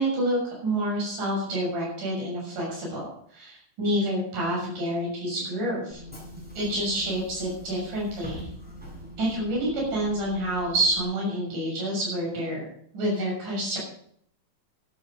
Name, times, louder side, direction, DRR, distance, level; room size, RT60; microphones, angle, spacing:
voice 1, 0.0-6.0 6.5-8.5 9.2-12.6 12.9-13.8, right 1 dB, 70° right, -3 dB, 8.2 m, -28 dB
Bus / Engine, 5.9-11.0, equal, 5° right, 6.7 m, -43 dB
14.0 x 12.0 x 5.4 m, 0.65 s
omnidirectional pair, 3.8 m